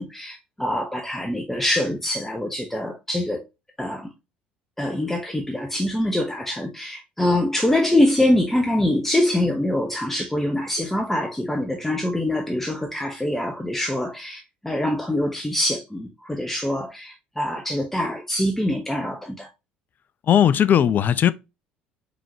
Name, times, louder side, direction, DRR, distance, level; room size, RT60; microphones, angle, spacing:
voice 1, 0.0-3.4 3.8-4.1 4.8-19.5, left 1 dB, 5° left, 0.8 m, -24 dB
voice 2, 20.3-21.3, left 9 dB, 40° left, 0.4 m, -17 dB
4.8 x 3.6 x 2.7 m
figure-of-eight pair, 55°, 5 cm